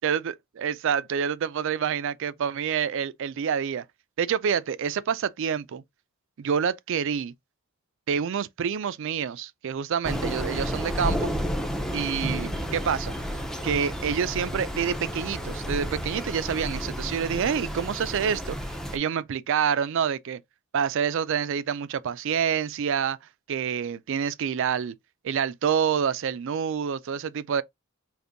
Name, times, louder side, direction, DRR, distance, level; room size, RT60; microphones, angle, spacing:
voice 1, 0.0-3.8 4.2-5.8 6.4-7.3 8.1-11.3 11.9-13.1 13.6-18.6 18.9-20.4 20.7-23.2 23.5-24.9 25.2-27.6, right 7 dB, 60° right, 0.4 m, -27 dB
Thunder / Rain, 10.0-19.0, equal, ahead, 0.5 m, -31 dB
5.1 x 2.6 x 2.5 m
head